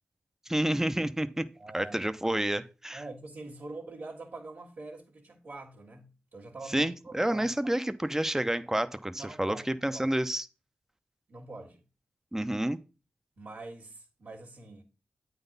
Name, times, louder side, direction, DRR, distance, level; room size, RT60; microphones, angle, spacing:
voice 1, 0.5-1.5 1.7-3.0 6.7-9.6 9.8-10.5 12.3-12.8, right 1 dB, 10° right, 0.7 m, -29 dB
voice 2, 1.6-2.1 2.9-7.5 9.2-10.1 11.3-11.8 13.4-14.8, right 2 dB, 85° right, 1.7 m, -44 dB
8.7 x 4.0 x 5.3 m
cardioid pair, 45°, 3 cm